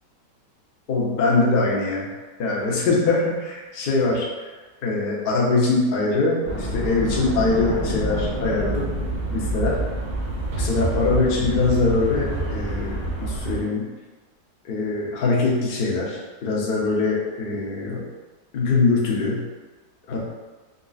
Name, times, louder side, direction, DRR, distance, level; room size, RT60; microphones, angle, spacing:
voice 1, 0.9-2.1 2.4-4.5 4.8-8.9 9.3-9.7 10.6-13.8 14.7-18.0 18.5-19.4 20.1-20.2, left 3 dB, 65° left, -4 dB, 0.5 m, -22 dB
sound 1, 6.5-13.6, right 2 dB, 70° right, 1.2 m, -27 dB
4.0 x 2.6 x 2.3 m, 1.3 s
omnidirectional pair, 1.9 m